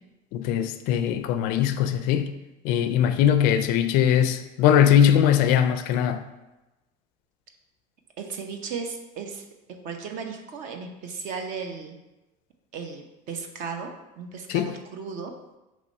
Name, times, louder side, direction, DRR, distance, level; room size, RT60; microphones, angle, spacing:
voice 1, 0.3-2.3 2.6-6.2 14.5-14.7, left 9 dB, 55° left, 0.4 m, -21 dB
voice 2, 8.2-9.4 9.8-12.0 12.7-15.3, right 5 dB, 45° right, 0.8 m, -35 dB
5.8 x 3.1 x 5.3 m
cardioid pair, 170°, 18 cm